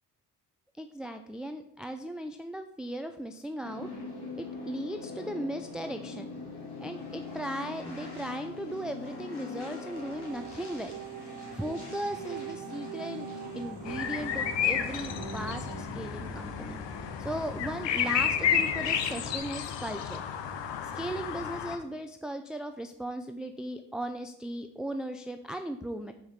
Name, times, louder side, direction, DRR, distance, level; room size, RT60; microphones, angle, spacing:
voice 1, 0.8-3.9 4.4-6.3 6.8-11.0 11.5-13.3 13.5-16.8 17.2-20.2 20.8-26.1, right 1 dB, ahead, 7 dB, 0.4 m, -37 dB
sound 1, 3.6-19.4, left 3 dB, 65° left, 2.1 m, -42 dB
sound 2, 9.7-15.8, right 12 dB, 75° right, 0.7 m, -43 dB
sound 3, 13.9-21.8, left 8 dB, 85° left, 0.8 m, -31 dB
5.9 x 4.6 x 5.7 m, 0.75 s
cardioid pair, 60°, 42 cm